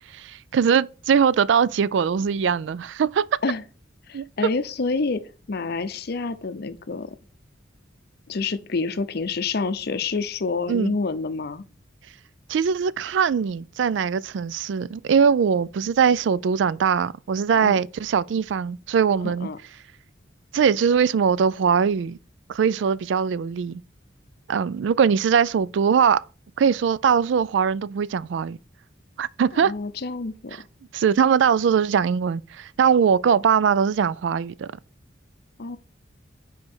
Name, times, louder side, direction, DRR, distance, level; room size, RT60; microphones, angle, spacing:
voice 1, 0.1-3.2 4.1-4.3 10.7-11.0 12.5-19.5 20.5-22.2 22.5-23.8 24.5-26.2 26.6-28.6 29.2-29.7 30.9-34.7, right 7 dB, 65° right, 0.3 m, -21 dB
voice 2, 4.1-5.2 5.5-7.1 8.3-11.6 17.6-17.8 19.2-19.6 29.5-30.7 35.6-35.8, left 4 dB, 55° left, 0.6 m, -28 dB
5.4 x 4.7 x 6.0 m
head